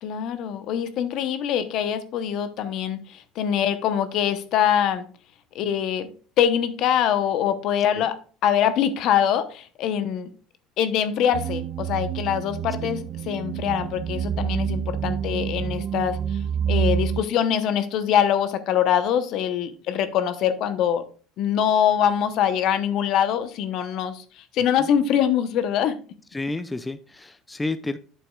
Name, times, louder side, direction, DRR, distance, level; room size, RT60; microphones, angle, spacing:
voice 1, 0.0-5.1 5.5-6.1 6.4-10.3 10.8-16.4 16.7-21.0 21.4-26.0, left 9 dB, 60° left, 0.8 m, -24 dB
sound 1, 11.3-17.2, right 8 dB, 50° right, 0.4 m, -27 dB
voice 2, 26.3-28.0, left 2 dB, 15° left, 0.5 m, -31 dB
8.9 x 6.9 x 2.3 m
supercardioid pair, 100°, 0 cm